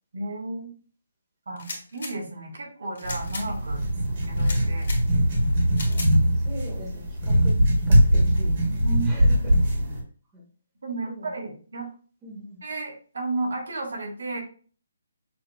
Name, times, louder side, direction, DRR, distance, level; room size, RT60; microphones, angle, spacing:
voice 1, 0.1-0.7 1.5-1.7 1.9-4.9 6.3-6.5 8.6-9.1 10.8-11.9 12.6-14.4, right 3 dB, 70° right, 1 dB, 1.7 m, -33 dB
sound 1, 1.6-2.1 3.0-3.5 4.4-5.0 5.7-6.1, left 3 dB, 55° left, 1.7 m, -36 dB
sound 2, 3.0-10.0, equal, 40° right, 1.6 m, -21 dB
voice 2, 6.3-8.6 9.1-9.6 10.3-10.4 11.1-11.3 12.2-12.6, equal, 15° right, -3 dB, 1.4 m, -41 dB
6.1 x 3.0 x 2.2 m, 0.41 s
hypercardioid pair, 160°, 0 cm